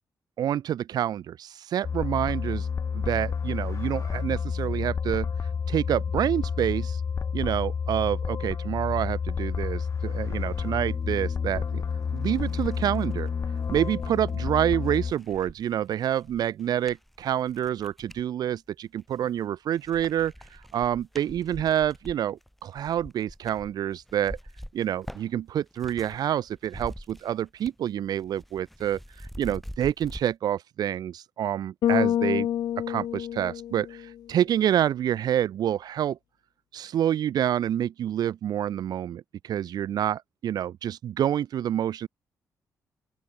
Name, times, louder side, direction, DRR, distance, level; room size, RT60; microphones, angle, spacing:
voice 1, 0.4-2.7 2.9-5.3 5.7-7.0 7.3-11.8 12.1-13.3 13.7-24.4 24.7-32.5 32.9-36.2 36.7-42.1, right 10 dB, 75° right, 2.6 m, -28 dB
sound 1, 1.8-15.1, left 6 dB, 50° left, 4.4 m, -30 dB
sound 2, 11.6-11.7 12.1-18.3 18.9-19.5 19.8-26.2 26.5-27.9 28.1-30.2, equal, ahead, 7.6 m, -45 dB
Bass guitar, 31.8-34.2, left 10 dB, 75° left, 1.5 m, -27 dB
open air
cardioid pair, 85°, 7 cm